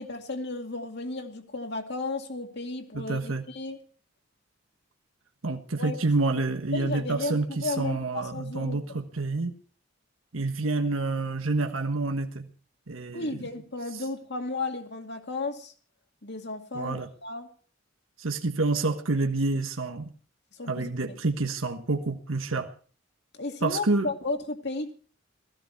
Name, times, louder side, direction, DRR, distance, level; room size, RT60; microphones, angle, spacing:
voice 1, 0.0-3.8 5.8-6.0 6.3-6.4 6.7-9.0 13.1-15.7 16.2-17.5 20.5-21.2 23.3-24.9, left 2 dB, 55° left, 4 dB, 2.3 m, -34 dB
voice 2, 2.9-3.4 5.4-9.5 10.3-12.5 12.9-13.4 13.9-14.0 16.7-17.1 18.2-20.1 20.7-22.7 23.6-24.1, right 3 dB, 90° right, 5 dB, 1.4 m, -28 dB
17.0 x 15.5 x 4.7 m, 0.43 s
head